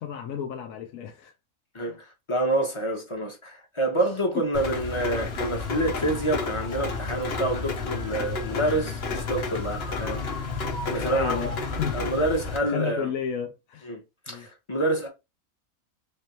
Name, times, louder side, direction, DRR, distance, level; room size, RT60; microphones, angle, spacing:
voice 1, 0.0-1.3 1.9-2.0 4.3-4.4 11.1-12.0 12.6-13.9 14.3-14.5, left 8 dB, 70° left, 1.0 m, -32 dB
voice 2, 1.7-10.6 10.9-11.5 11.9-13.1 13.8-15.1, right 1 dB, 20° left, 1.0 m, -27 dB
Rain, 4.5-12.6, left 4 dB, 50° left, 1.0 m, -31 dB
4.0 x 3.3 x 2.8 m
omnidirectional pair, 1.5 m